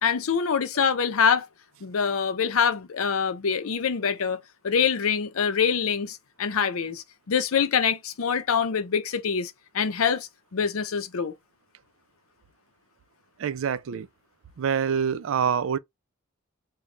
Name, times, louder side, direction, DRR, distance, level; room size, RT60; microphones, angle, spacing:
voice 1, 0.0-1.5 1.8-11.3, left 6 dB, 85° left, 0.6 m, -25 dB
voice 2, 13.4-14.1 14.6-15.8, right 7 dB, 70° right, 0.4 m, -26 dB
3.2 x 2.2 x 3.7 m
head